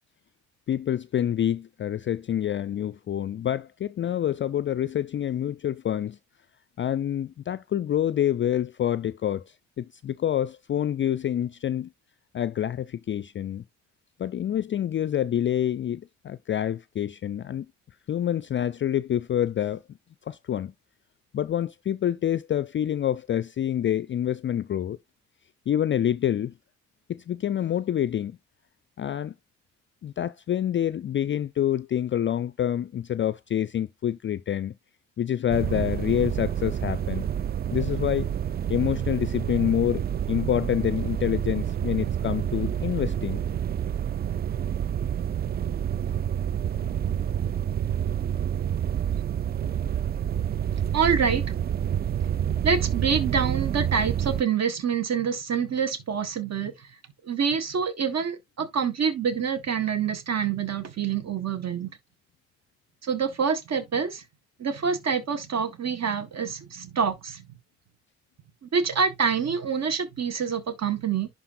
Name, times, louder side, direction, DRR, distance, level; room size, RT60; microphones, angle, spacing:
voice 1, 0.7-6.2 6.8-11.9 12.3-13.6 14.2-17.7 18.1-19.8 20.3-20.7 21.3-25.0 25.7-26.5 27.1-28.4 29.0-29.3 30.0-34.7 35.2-37.3 37.7-38.3 38.7-43.4, left 10 dB, 35° left, 0.4 m, -27 dB
sound 1, 35.5-54.4, right 9 dB, 30° right, 0.4 m, -28 dB
voice 2, 50.9-51.4 52.6-56.9 57.2-62.0 63.0-64.2 64.6-67.5 68.6-71.3, right 6 dB, 45° right, 1.7 m, -26 dB
11.0 x 4.0 x 2.6 m
hypercardioid pair, 50°, 35 cm